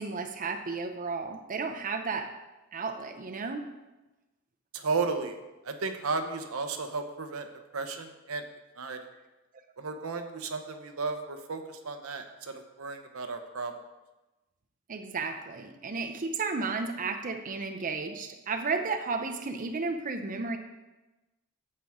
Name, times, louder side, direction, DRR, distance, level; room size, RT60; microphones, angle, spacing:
voice 1, 0.0-2.4 2.7-3.7 14.9-20.6, right 4 dB, 40° right, 5 dB, 0.6 m, -33 dB
voice 2, 4.7-5.4 5.6-7.5 7.7-8.4 8.8-9.0 9.8-13.7, right 4 dB, 85° right, 6 dB, 0.8 m, -34 dB
8.8 x 7.5 x 3.6 m, 1.1 s
head